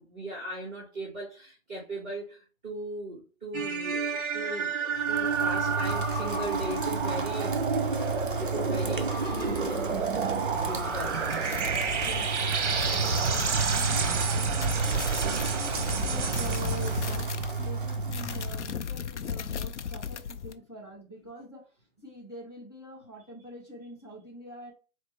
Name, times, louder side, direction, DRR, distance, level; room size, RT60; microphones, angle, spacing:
voice 1, 0.0-7.7 8.1-9.4 9.7-9.9 10.4-11.2 14.0-14.3 15.2-15.5, right 1 dB, 10° right, 1.0 m, -38 dB
sound 1, 3.5-17.3, right 5 dB, 55° right, 1.0 m, -30 dB
Rain, 4.9-18.7, right 4 dB, 40° right, 0.5 m, -33 dB
sound 2, 10.9-20.5, left 7 dB, 60° left, 0.5 m, -38 dB
voice 2, 11.9-24.7, equal, 20° left, 0.7 m, -44 dB
4.3 x 3.2 x 3.1 m
hypercardioid pair, 180°, 42 cm